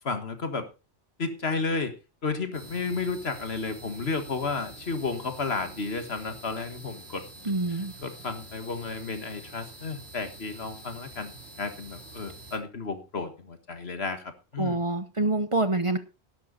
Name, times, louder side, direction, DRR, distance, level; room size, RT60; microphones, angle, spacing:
voice 1, 0.0-0.7 1.2-2.0 2.2-7.3 7.7-11.3 11.6-14.8, left 4 dB, 70° left, 9 dB, 1.9 m, -32 dB
sound 1, 2.5-12.6, right 2 dB, 75° right, 3.4 m, -46 dB
voice 2, 7.4-7.9 14.6-16.0, right 2 dB, 30° right, 11 dB, 1.0 m, -26 dB
13.0 x 11.5 x 4.1 m, 0.30 s
omnidirectional pair, 1.1 m